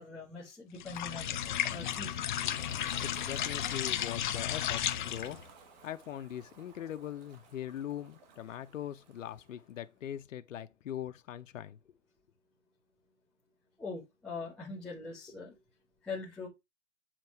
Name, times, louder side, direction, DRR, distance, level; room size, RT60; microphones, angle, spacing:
voice 1, 0.0-2.3 13.8-15.6 16.0-16.5, left 4 dB, ahead, 0.9 m, -42 dB
sound 1, 0.8-5.4, left 11 dB, 40° left, 0.5 m, -34 dB
Ocean, 0.9-9.7, right 4 dB, 35° right, 1.4 m, -55 dB
voice 2, 3.0-5.4 5.8-11.8, left 11 dB, 85° left, 0.8 m, -41 dB
7.5 x 2.9 x 4.5 m
hypercardioid pair, 160°, 38 cm